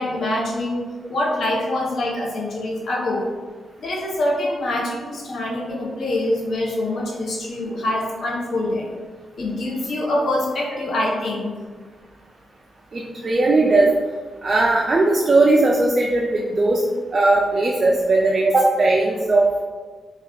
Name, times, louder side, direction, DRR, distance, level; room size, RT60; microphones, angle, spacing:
voice 1, 0.0-3.3 3.8-8.9 9.4-11.5, left 1 dB, 70° left, -3 dB, 0.7 m, -25 dB
voice 2, 12.9-13.9 14.4-16.8 17.1-19.6, right 2 dB, 45° right, -2 dB, 0.4 m, -18 dB
2.8 x 2.3 x 3.3 m, 1.4 s
cardioid pair, 75°, 0 cm